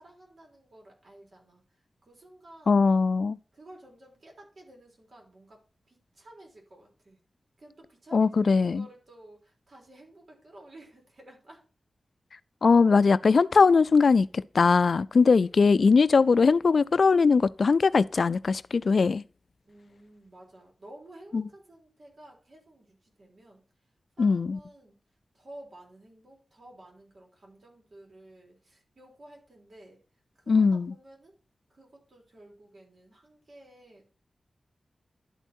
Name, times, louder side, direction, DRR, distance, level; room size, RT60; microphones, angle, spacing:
voice 1, 0.0-2.8 3.5-7.2 7.6-11.6 19.7-23.6 24.2-25.0 25.3-30.0 30.4-31.3 31.7-34.0, right 1 dB, 60° right, 3.6 m, -52 dB
voice 2, 2.7-3.4 8.1-8.8 12.6-14.3 14.5-19.2 21.3-21.4 24.2-24.6 30.5-30.9, left 4 dB, 70° left, 0.3 m, -20 dB
11.5 x 4.5 x 4.3 m
cardioid pair, 55°, 0 cm